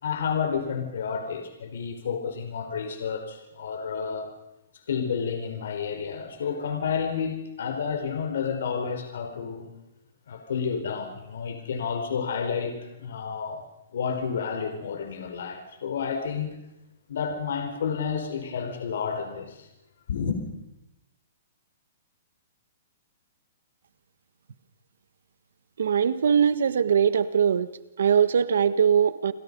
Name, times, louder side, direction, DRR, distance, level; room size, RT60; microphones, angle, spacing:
voice 1, 0.0-4.3 4.9-9.7 10.3-13.6 13.9-16.6 17.1-19.7 20.1-20.4, left 6 dB, 75° left, 6 dB, 4.4 m, -30 dB
voice 2, 25.8-27.7 28.0-29.3, right 7 dB, 80° right, 13 dB, 1.5 m, -21 dB
29.5 x 23.0 x 5.5 m, 0.92 s
hypercardioid pair, 155°, 0 cm